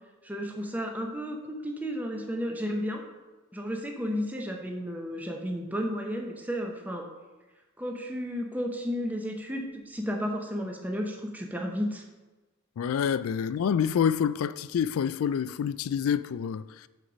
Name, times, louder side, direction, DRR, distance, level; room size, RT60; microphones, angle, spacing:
voice 1, 0.2-3.0 3.5-7.1 7.8-12.0, equal, 10° right, 0.7 m, -33 dB
voice 2, 12.8-16.9, left 7 dB, 80° left, 0.3 m, -27 dB
6.5 x 4.6 x 6.1 m
head